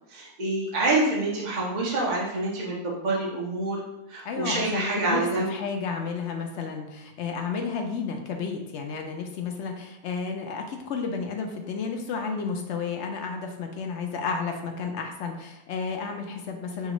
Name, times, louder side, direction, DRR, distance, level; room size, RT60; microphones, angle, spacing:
voice 1, 0.1-3.8 4.1-5.5, right 2 dB, 35° right, -5 dB, 0.8 m, -27 dB
voice 2, 4.2-5.2 5.5-16.9, left 5 dB, 60° left, 3 dB, 0.7 m, -32 dB
6.8 x 2.4 x 3.0 m, 0.91 s
omnidirectional pair, 1.6 m